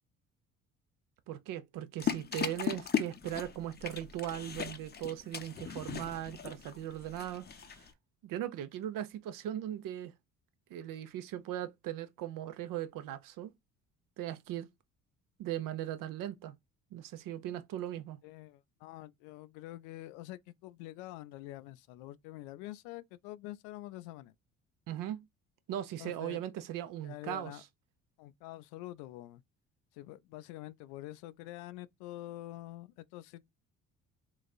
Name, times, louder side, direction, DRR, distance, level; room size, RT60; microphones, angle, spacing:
voice 1, 1.3-7.9 8.2-10.1 10.7-13.5 14.2-14.7 15.4-16.6 16.9-18.2 24.9-25.2 25.7-27.6, right 12 dB, 55° right, 0.6 m, -39 dB
sound 1, 2.0-7.9, left 7 dB, 25° left, 0.6 m, -38 dB
voice 2, 18.2-24.3 26.0-26.4 27.0-27.6 28.2-29.4 29.9-33.5, left 16 dB, 65° left, 0.5 m, -46 dB
3.9 x 2.5 x 2.3 m
figure-of-eight pair, 50°, 41 cm